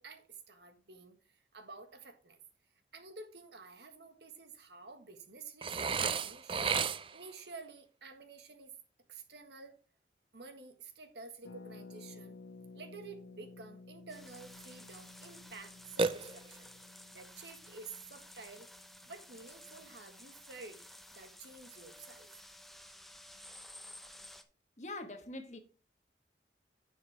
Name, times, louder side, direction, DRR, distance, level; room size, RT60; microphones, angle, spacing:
voice 1, 0.0-2.4 2.9-8.8 9.1-9.8 10.3-12.4 12.7-16.7 17.1-18.7 19.1-20.8 21.1-22.4, right 4 dB, 75° right, 1.7 m, -51 dB
Burping eructation, 5.6-7.3 16.0-16.8, right 5 dB, 30° right, 0.5 m, -33 dB
Harp, 11.4-21.1 21.3-21.4 21.6-21.9, left 3 dB, 90° left, 0.8 m, -55 dB
sound 1, 14.1-24.4, left 1 dB, ahead, 0.8 m, -54 dB
voice 2, 24.8-25.6, left 2 dB, 40° left, 1.5 m, -43 dB
10.5 x 7.2 x 3.5 m
head